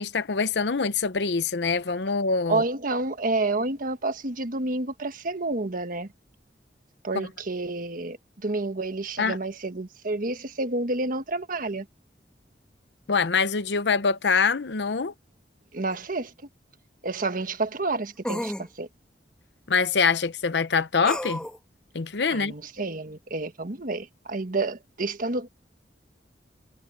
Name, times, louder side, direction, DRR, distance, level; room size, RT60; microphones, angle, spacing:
voice 1, 0.0-2.6 9.2-9.4 13.1-15.1 19.7-21.4 21.9-22.5, left 5 dB, 75° left, 0.8 m, -24 dB
voice 2, 2.5-6.1 7.0-8.2 8.4-11.9 15.7-16.3 17.0-18.9 22.3-25.5, right 2 dB, 50° right, 1.4 m, -29 dB
sound 1, 15.9-16.0 18.2-18.7 21.0-21.6, equal, 5° left, 2.6 m, -31 dB
head